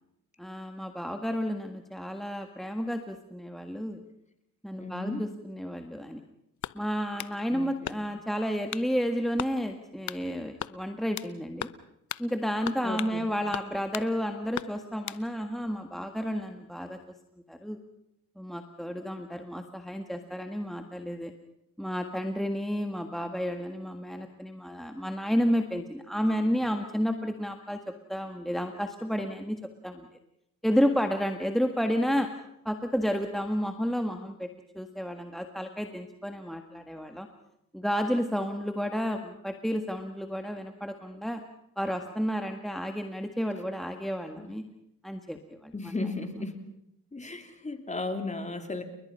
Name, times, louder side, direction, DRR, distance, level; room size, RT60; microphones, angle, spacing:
voice 1, 0.4-4.0 4.6-6.2 6.7-11.7 12.2-17.0 17.5-17.8 18.3-21.3 21.8-27.8 28.1-30.1 30.6-32.3 32.6-34.5 34.7-37.3 37.7-41.4 41.8-44.6 45.0-45.9, equal, ahead, 5 dB, 1.7 m, -31 dB
voice 2, 4.8-5.3 7.5-8.0 12.8-13.3 44.4-44.5 45.7-46.6 47.1-48.8, left 2 dB, 20° left, 6 dB, 3.3 m, -35 dB
sound 1, 6.6-7.4 7.8-8.3 8.7-8.9 9.4-9.6 10.1-10.2 10.6-11.3 11.6-11.8 12.1-12.3 12.7-13.2 13.5-14.1 14.5-15.2, left 11 dB, 60° left, 0.9 m, -37 dB
30.0 x 21.0 x 5.6 m, 0.81 s
cardioid pair, 75°, 32 cm